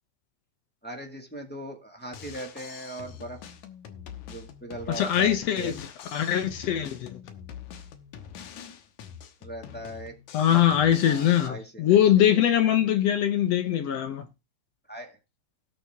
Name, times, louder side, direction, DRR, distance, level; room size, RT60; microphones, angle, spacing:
voice 1, 0.8-3.4 4.3-5.7 9.4-10.1 11.0-12.0 14.9-15.2, right 1 dB, 5° left, 1.2 m, -39 dB
Drum kit, 2.0-11.5, left 8 dB, 85° left, 2.5 m, -44 dB
voice 2, 5.0-5.9 6.1-7.2 10.3-14.3, left 10 dB, 65° left, 1.9 m, -22 dB
18.0 x 6.2 x 3.5 m
omnidirectional pair, 3.3 m